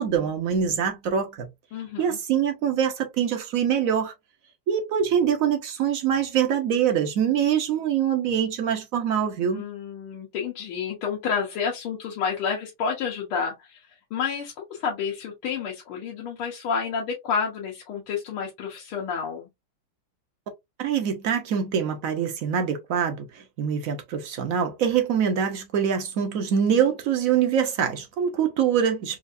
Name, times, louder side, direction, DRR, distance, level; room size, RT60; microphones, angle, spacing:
voice 1, 0.0-1.5 2.0-4.1 4.7-9.6 20.8-29.2, right 8 dB, 65° right, 0.8 m, -24 dB
voice 2, 1.7-2.2 9.5-19.5, left 6 dB, 90° left, 1.8 m, -30 dB
4.5 x 2.4 x 2.5 m
omnidirectional pair, 2.3 m